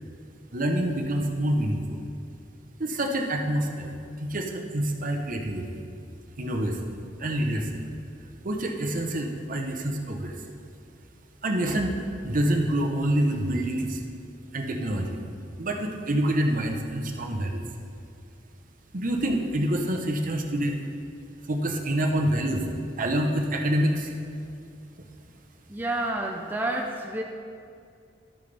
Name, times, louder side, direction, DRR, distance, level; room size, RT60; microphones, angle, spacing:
voice 1, 0.5-2.0 2.8-3.9 4.2-5.8 6.4-6.8 7.2-7.8 8.4-10.3 11.4-12.0 12.2-14.0 14.5-15.2 15.6-17.6 18.9-20.8 21.5-22.6 23.0-24.1, right 1 dB, 50° right, 3 dB, 0.9 m, -26 dB
voice 2, 25.7-27.2, right 1 dB, 10° right, 0 dB, 0.5 m, -29 dB
12.0 x 9.0 x 3.4 m, 2.4 s
head